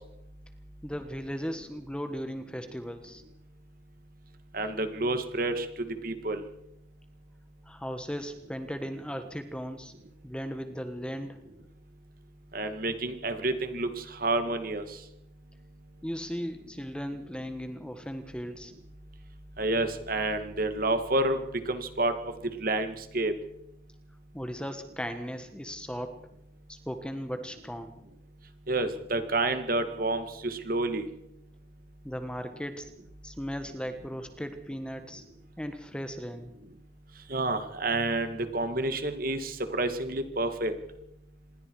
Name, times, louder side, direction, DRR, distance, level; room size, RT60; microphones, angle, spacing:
voice 1, 0.8-3.2 7.6-9.9 10.2-11.4 16.0-18.7 24.3-26.2 26.7-27.9 32.0-32.9 33.2-35.2 35.6-36.5, equal, 5° left, 8 dB, 1.3 m, -37 dB
voice 2, 4.5-6.4 12.5-14.8 19.6-21.4 21.7-22.1 22.6-23.3 28.7-31.1 37.3-40.7, right 2 dB, 45° right, 8 dB, 2.2 m, -29 dB
27.0 x 21.0 x 4.8 m, 0.83 s
head